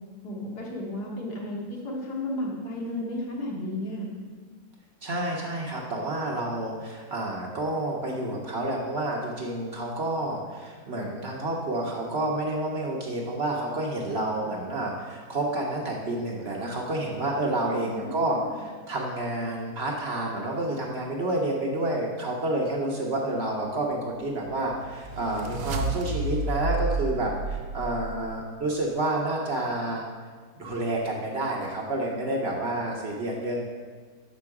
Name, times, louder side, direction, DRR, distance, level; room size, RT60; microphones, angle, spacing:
voice 1, 0.2-4.1 17.8-18.6, left 1 dB, 85° left, -3 dB, 1.9 m, -33 dB
voice 2, 5.0-30.0 30.6-33.6, right 2 dB, 50° right, -1 dB, 0.9 m, -29 dB
sound 1, 24.2-28.4, right 2 dB, 85° right, 1.2 m, -31 dB
6.6 x 5.3 x 4.7 m, 1.5 s
omnidirectional pair, 1.7 m